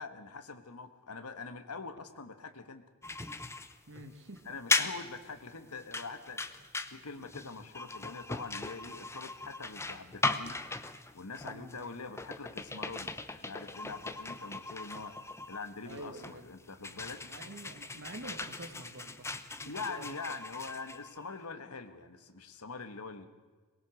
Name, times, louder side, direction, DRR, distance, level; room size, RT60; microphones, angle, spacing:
voice 1, 0.0-2.8 4.4-6.4 6.9-10.6 11.1-15.2 15.5-17.3 19.6-23.3, left 4 dB, 85° left, 9 dB, 1.5 m, -44 dB
sound 1, 3.0-21.4, left 3 dB, 10° left, 0.8 m, -38 dB
voice 2, 3.9-4.4 11.4-11.8 15.8-16.5 17.2-19.3 19.6-20.2, right 1 dB, 55° right, 7 dB, 2.0 m, -47 dB
22.0 x 20.0 x 6.4 m, 1.4 s
head